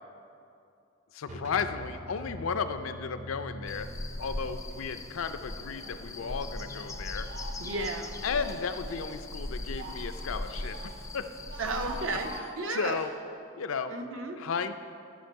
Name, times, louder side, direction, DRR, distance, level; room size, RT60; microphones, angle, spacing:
voice 1, 1.1-7.3 8.2-11.3 12.0-13.1 13.6-14.0 14.4-14.7, left 5 dB, 80° left, 9 dB, 0.5 m, -34 dB
sound 1, 1.3-7.0, equal, 35° right, 0.6 m, -45 dB
sound 2, 3.7-12.4, left 2 dB, 15° left, 0.3 m, -39 dB
Speech, 5.3-6.0 6.3-9.1 9.5-11.0 11.3-13.1, right 2 dB, 55° right, 1.2 m, -45 dB
voice 2, 7.6-8.1 11.6-13.0 13.9-14.4, right 3 dB, 75° right, 4 dB, 0.8 m, -33 dB
13.0 x 6.0 x 4.6 m, 2.6 s
head